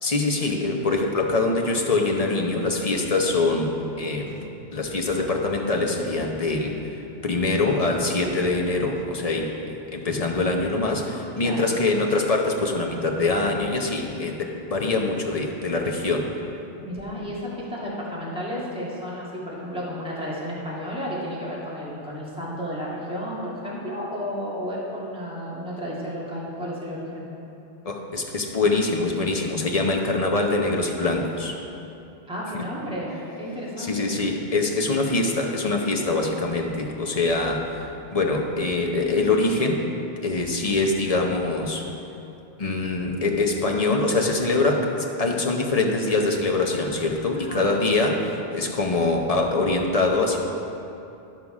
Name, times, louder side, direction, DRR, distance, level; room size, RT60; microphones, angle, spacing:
voice 1, 0.0-4.4 4.7-6.8 7.2-16.3 27.8-31.6 33.8-37.9 38.1-39.8 40.2-41.9 42.6-50.4, left 3 dB, 35° left, 1 dB, 0.9 m, -24 dB
voice 2, 11.4-11.7 16.8-27.3 32.3-34.1 47.3-47.7, equal, 5° right, -7 dB, 1.9 m, -32 dB
12.0 x 5.8 x 4.8 m, 2.8 s
omnidirectional pair, 1.1 m